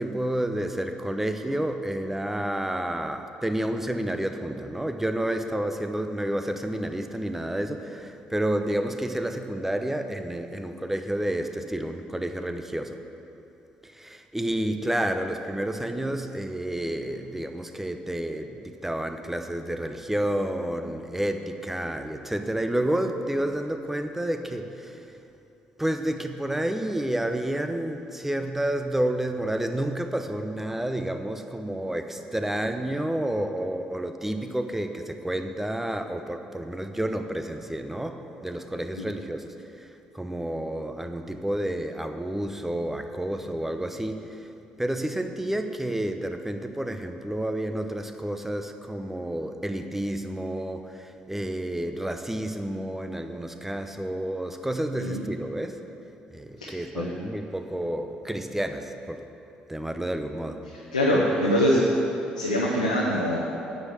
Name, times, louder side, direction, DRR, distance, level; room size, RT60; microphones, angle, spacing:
voice 1, 0.0-13.0 13.8-25.1 25.8-44.5 44.8-55.8 56.3-59.3 59.7-60.6, right 1 dB, 5° right, 7 dB, 0.8 m, -30 dB
voice 2, 56.6-57.1 60.9-61.8 62.4-63.5, equal, 90° left, -6 dB, 0.9 m, -24 dB
9.6 x 6.4 x 7.5 m, 2.8 s
figure-of-eight pair, 50°, 4 cm